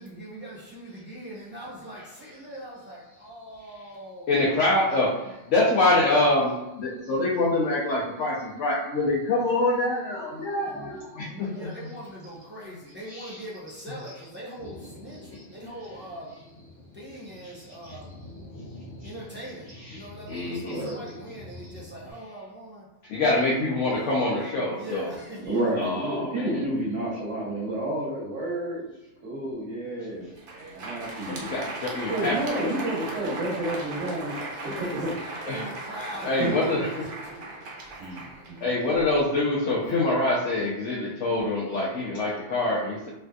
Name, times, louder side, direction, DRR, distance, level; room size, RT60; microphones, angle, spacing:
voice 1, 0.0-5.2 11.2-16.4 16.9-18.2 19.0-23.2 23.6-23.9 24.7-26.1 33.8-35.2 35.4-37.6 37.9-38.5, right 1 dB, 10° right, -7 dB, 0.7 m, -42 dB
voice 2, 4.3-5.2 5.5-11.7 13.1-13.3 19.0-19.1 19.9-20.8 23.1-25.1 25.8-26.6 31.2-32.8 35.5-35.6 36.2-37.1 38.0-38.2 38.6-43.1, left 2 dB, 90° left, -5 dB, 1.0 m, -25 dB
Thunder, 14.6-22.1, left 1 dB, 30° left, 0.4 m, -46 dB
voice 3, 20.5-21.0 21.5-21.6 25.4-28.8 29.2-30.3 30.7-31.5 32.1-34.3 35.0-35.1 36.1-36.6 38.0-38.7, right 1 dB, 75° right, -4 dB, 1.2 m, -30 dB
Crowd, 30.2-39.2, right 2 dB, 55° right, 0.7 m, -37 dB
3.3 x 2.6 x 2.3 m, 0.96 s
omnidirectional pair, 1.2 m